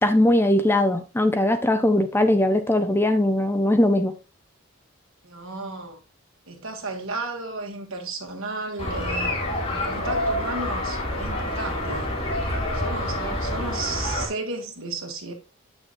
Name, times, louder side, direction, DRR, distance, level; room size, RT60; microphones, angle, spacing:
voice 1, 0.0-4.1 13.2-13.3, left 1 dB, 10° left, 0.6 m, -20 dB
voice 2, 5.2-6.0 6.5-9.3 9.7-12.1 12.7-15.3, right 3 dB, 75° right, 2.0 m, -33 dB
sound 1, 8.8-14.3, left 1 dB, 30° left, 2.3 m, -27 dB
8.1 x 6.2 x 2.5 m
head